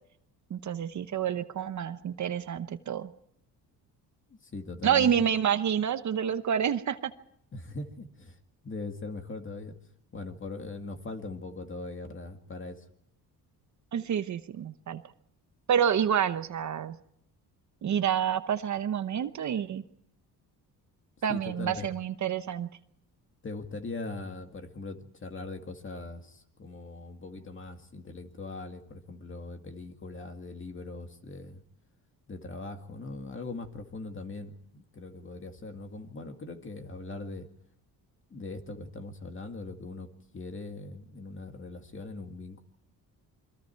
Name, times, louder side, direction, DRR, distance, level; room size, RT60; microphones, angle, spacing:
voice 1, 0.5-3.1 4.8-7.1 13.9-15.0 15.7-17.0 17.8-19.8 21.2-22.7, right 8 dB, 45° right, 11 dB, 1.0 m, -28 dB
voice 2, 4.4-5.1 7.5-8.4 8.6-9.8 10.1-12.8 21.3-21.9 23.4-31.6 32.3-37.5 38.3-40.1 40.3-42.6, left 3 dB, 30° left, 6 dB, 2.2 m, -40 dB
28.0 x 22.5 x 4.6 m, 0.73 s
cardioid pair, 115°, 38 cm